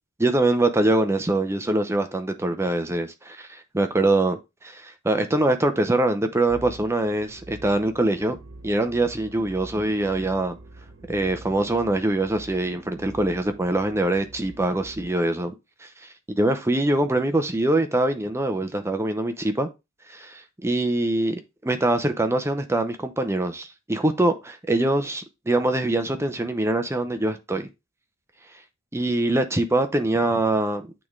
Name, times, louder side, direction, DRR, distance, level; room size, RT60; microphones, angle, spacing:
voice 1, 0.2-8.4 8.6-10.6 11.1-15.5 15.8-16.1 16.4-19.7 20.1-27.7 28.9-30.8, right 2 dB, 15° right, 0.6 m, -23 dB
sound 1, 6.5-15.1, right 2 dB, 70° right, 1.4 m, -45 dB
8.4 x 3.7 x 3.2 m
head